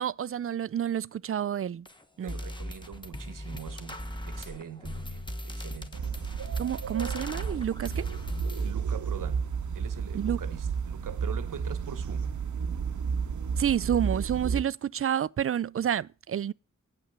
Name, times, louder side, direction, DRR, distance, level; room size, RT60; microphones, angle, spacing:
voice 1, 0.0-1.9 2.2-2.4 6.6-8.1 10.1-10.4 13.6-16.5, right 9 dB, 45° right, 0.4 m, -29 dB
sound 1, 1.9-2.0 2.3-8.7, equal, 15° left, 1.3 m, -38 dB
voice 2, 2.2-6.1 6.4-6.6 8.6-12.4, right 7 dB, 85° right, 1.1 m, -43 dB
sound 2, 5.9-14.6, right 6 dB, 65° right, 0.8 m, -32 dB
8.8 x 5.7 x 6.7 m
cardioid pair, 50°, 31 cm